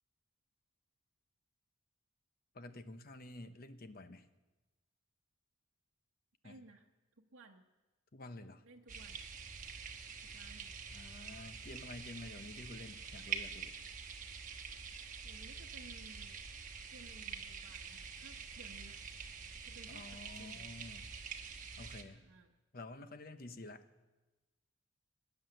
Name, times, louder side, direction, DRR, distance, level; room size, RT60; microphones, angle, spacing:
voice 1, 2.5-4.3 6.4-6.6 8.1-8.6 10.9-13.7 19.9-21.1 21.8-22.2 22.7-23.8, left 2 dB, 45° left, 10 dB, 0.9 m, -50 dB
voice 2, 6.4-6.9 7.2-7.7 8.6-9.2 10.2-10.8 15.2-16.4 16.9-19.0 19.7-20.8 22.0-22.5, right 2 dB, 85° right, 0 dB, 1.0 m, -58 dB
sound 1, 8.9-22.0, right 6 dB, 40° right, 1.2 m, -46 dB
18.5 x 9.6 x 7.8 m, 1.1 s
head